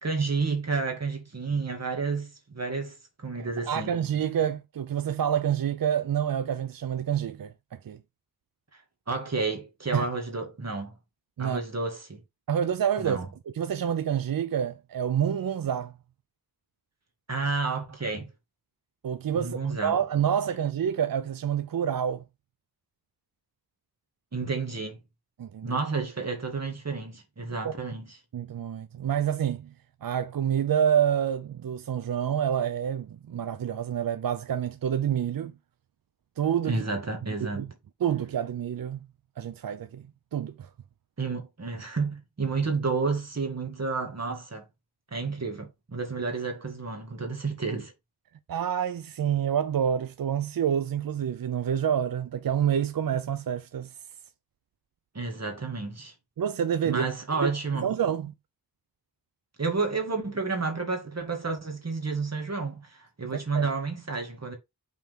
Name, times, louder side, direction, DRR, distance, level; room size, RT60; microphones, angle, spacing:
voice 1, 0.0-3.9 9.1-11.0 11.4-12.2 13.0-13.3 17.3-18.3 19.3-20.0 24.3-25.0 25.6-28.2 36.7-37.7 41.2-44.7 45.1-47.9 55.1-56.1 56.8-57.9 59.6-64.5, right 4 dB, 45° right, 2.2 m, -31 dB
voice 2, 3.4-7.5 7.9-8.0 9.9-10.0 11.4-11.6 12.5-13.2 13.6-15.9 19.0-22.2 25.4-25.7 27.6-27.7 28.3-29.7 30.0-35.5 36.4-36.8 37.4-37.7 38.0-39.0 39.4-40.1 40.3-40.7 48.5-53.9 56.4-57.0 57.4-57.5 57.8-58.3 63.3-63.7, right 9 dB, 65° right, 0.6 m, -28 dB
5.8 x 4.4 x 3.7 m
wide cardioid pair, 105°, 38 cm